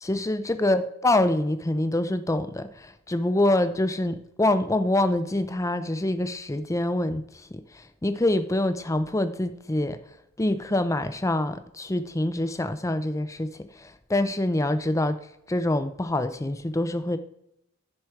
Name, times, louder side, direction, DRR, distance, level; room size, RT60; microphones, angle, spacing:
voice 1, 0.0-7.5 7.7-10.0 10.4-13.5 13.8-15.2 15.5-17.2, left 1 dB, 15° left, 10 dB, 0.6 m, -25 dB
15.0 x 5.1 x 4.6 m, 0.79 s
head